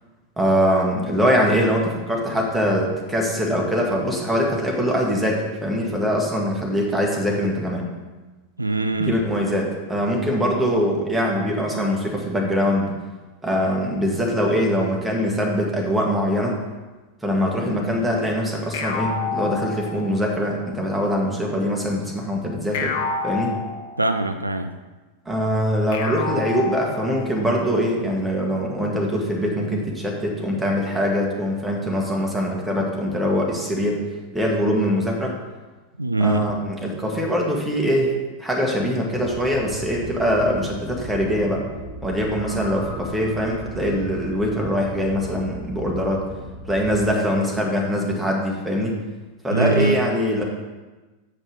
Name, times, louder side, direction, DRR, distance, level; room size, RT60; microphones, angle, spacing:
voice 1, 0.4-7.9 9.0-12.9 13.4-16.6 17.2-22.9 23.2-23.6 25.2-34.0 34.3-35.4 36.2-38.1 38.4-41.6 42.0-46.2 46.7-49.0 49.4-50.4, equal, 5° right, -1 dB, 1.6 m, -23 dB
voice 2, 8.6-9.2 24.0-24.7 36.0-36.5 49.5-50.0, right 2 dB, 85° right, 8 dB, 0.4 m, -22 dB
sound 1, 18.7-20.4 22.7-24.3 25.9-27.4, left 5 dB, 55° left, 0.8 m, -29 dB
sound 2, 39.1-47.1, right 2 dB, 85° left, 2.9 m, -37 dB
7.4 x 5.3 x 5.0 m, 1.2 s
figure-of-eight pair, 90°, 0 cm